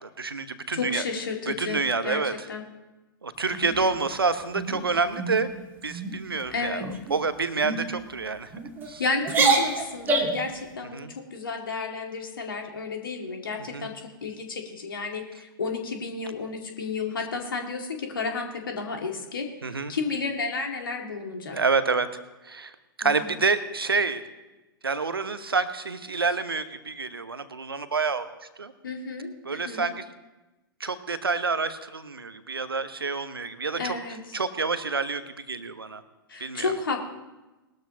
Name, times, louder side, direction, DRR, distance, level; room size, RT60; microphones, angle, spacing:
voice 1, 0.0-1.0 1.5-2.3 3.2-5.5 5.8-8.5 8.9-9.0 10.9-11.1 13.7-13.9 19.6-19.9 21.5-22.1 22.4-22.7 23.0-24.2 24.8-28.3 28.6-28.7 29.5-30.0 30.8-34.0 34.3-36.0 36.4-36.7, right 4 dB, 75° right, 11 dB, 0.9 m, -28 dB
voice 2, 0.7-2.6 6.5-6.9 9.0-21.6 23.0-23.3 28.8-29.9 33.8-34.4 36.3-37.0, left 4 dB, 65° left, 3 dB, 2.1 m, -32 dB
sound 1, 3.5-4.1 4.5-4.8 5.2-5.4 5.8-6.2 6.8-7.1 7.6-7.8 8.5-8.9 9.2-10.5, right 3 dB, 15° right, 1.8 m, -26 dB
20.0 x 13.0 x 2.9 m, 1.1 s
figure-of-eight pair, 105°, 12 cm